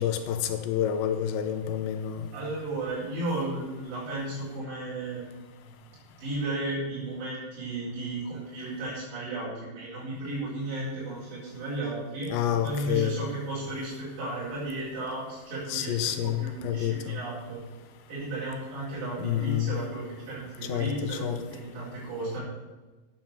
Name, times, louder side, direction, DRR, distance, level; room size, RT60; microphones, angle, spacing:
voice 1, 0.0-2.2 12.3-13.2 15.7-17.2 19.2-19.8 20.7-21.4, left 10 dB, 80° left, 8 dB, 3.0 m, -28 dB
voice 2, 2.3-5.8 6.2-12.3 12.6-17.6 18.1-22.4, right 2 dB, 65° right, -9 dB, 6.4 m, -34 dB
9.5 x 9.0 x 7.3 m, 1.2 s
omnidirectional pair, 5.4 m